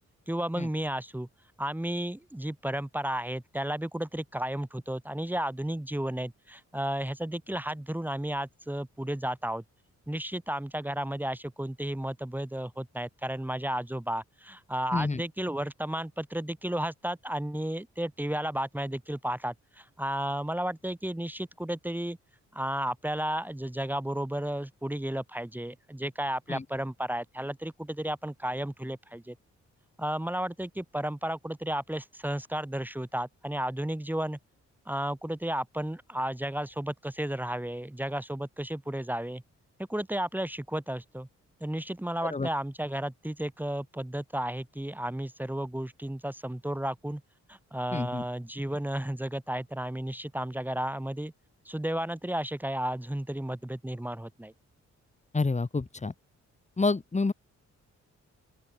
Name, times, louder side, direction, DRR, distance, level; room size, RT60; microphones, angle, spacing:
voice 1, 0.3-1.3 1.6-9.6 10.1-22.2 22.5-29.4 30.0-34.4 34.9-39.4 39.9-41.3 41.6-47.2 47.5-51.3 51.7-54.5, right 1 dB, 5° right, 3.6 m, -33 dB
voice 2, 14.9-15.2 26.5-26.6 42.2-42.5 47.9-48.2 55.3-56.1 56.8-57.3, left 3 dB, 25° left, 3.8 m, -28 dB
open air
wide cardioid pair, 125°, 29 cm